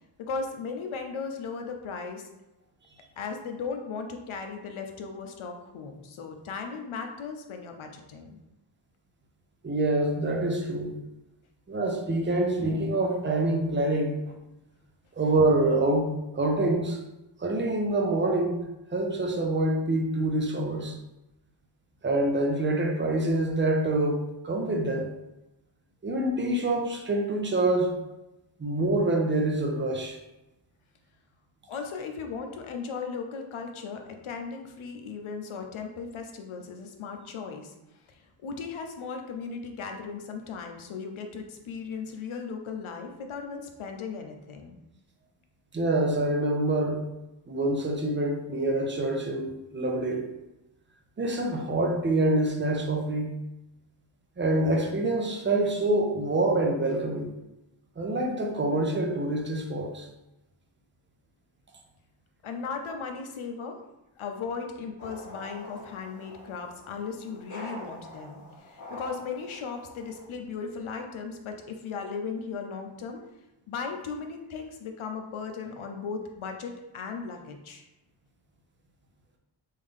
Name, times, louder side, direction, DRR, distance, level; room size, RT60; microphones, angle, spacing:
voice 1, 0.2-2.3 3.2-8.4 31.7-44.8 62.4-63.8 64.2-73.2 73.7-77.9, left 5 dB, 85° left, 4 dB, 0.6 m, -37 dB
voice 2, 9.6-11.0 11.7-14.2 15.2-17.0 17.4-18.6 18.9-21.0 22.0-25.1 26.0-28.0 28.6-30.2 45.7-47.0 47.5-50.3 51.2-53.3 54.4-57.3 58.0-60.1, right 2 dB, 25° right, 1 dB, 0.5 m, -26 dB
sound 1, 65.0-70.2, left 1 dB, 40° left, 1.0 m, -45 dB
3.3 x 2.7 x 3.6 m, 0.96 s
wide cardioid pair, 125°, 47 cm